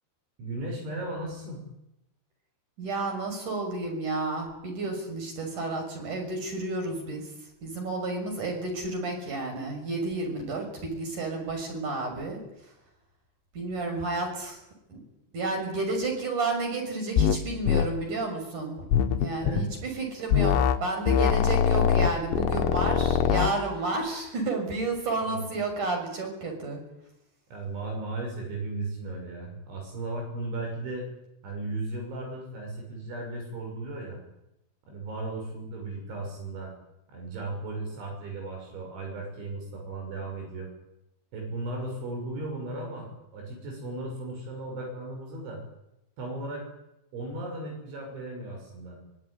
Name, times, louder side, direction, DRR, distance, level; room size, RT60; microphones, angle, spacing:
voice 1, 0.4-1.6 19.4-19.7 25.2-25.4 27.5-31.1 31.4-34.2 34.9-36.7 37.1-40.7 41.3-45.6 46.2-46.7 47.1-49.0, right 2 dB, 70° right, 1 dB, 8.6 m, -36 dB
voice 2, 2.8-7.3 7.6-12.4 13.5-14.6 14.9-15.0 15.3-18.8 19.2-26.8, right 3 dB, 40° right, 3 dB, 7.8 m, -31 dB
sound 1, 17.2-17.4 17.7-17.9 18.9-19.7 20.3-20.8 21.1-23.5, left 8 dB, 75° left, 3.4 m, -23 dB
24.0 x 23.0 x 10.0 m, 0.88 s
omnidirectional pair, 5.5 m